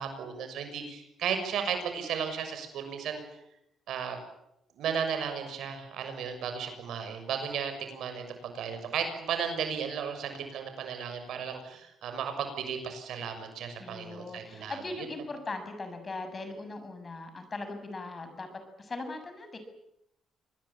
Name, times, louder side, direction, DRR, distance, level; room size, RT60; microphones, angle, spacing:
voice 1, 0.0-3.2 3.9-4.2 4.8-15.1, right 7 dB, 75° right, 7 dB, 6.5 m, -34 dB
voice 2, 13.8-18.5 18.8-19.6, left 2 dB, 30° left, 8 dB, 6.9 m, -39 dB
25.5 x 20.5 x 8.9 m, 0.82 s
cardioid pair, 90°, 0 cm